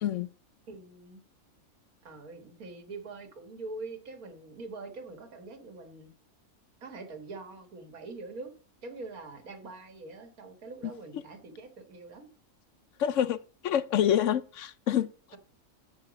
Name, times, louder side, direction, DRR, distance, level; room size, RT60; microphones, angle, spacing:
voice 1, 0.7-1.2 2.0-6.1 6.8-8.5 8.8-12.3, right 3 dB, 80° right, 2.1 m, -44 dB
voice 2, 13.0-13.4 13.6-15.1, left 10 dB, 65° left, 0.9 m, -26 dB
8.4 x 7.7 x 5.1 m
omnidirectional pair, 1.5 m